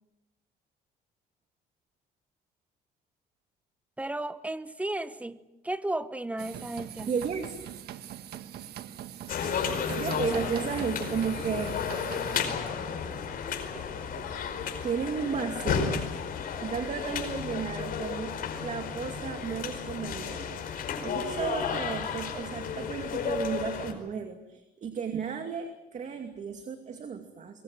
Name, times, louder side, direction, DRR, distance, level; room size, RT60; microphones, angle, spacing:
voice 1, 4.0-5.4 5.6-7.1, right 1 dB, 10° right, 1.2 m, -34 dB
sound 1, 6.4-12.5, right 11 dB, 70° right, 1.5 m, -42 dB
voice 2, 7.1-7.6 10.0-11.7 12.1-12.2 14.2-14.3 14.8-16.1 16.6-27.6, right 6 dB, 45° right, 2.5 m, -34 dB
sound 2, 9.3-23.9, left 6 dB, 55° left, 4.9 m, -33 dB
25.5 x 23.5 x 7.7 m
cardioid pair, 110°, 17 cm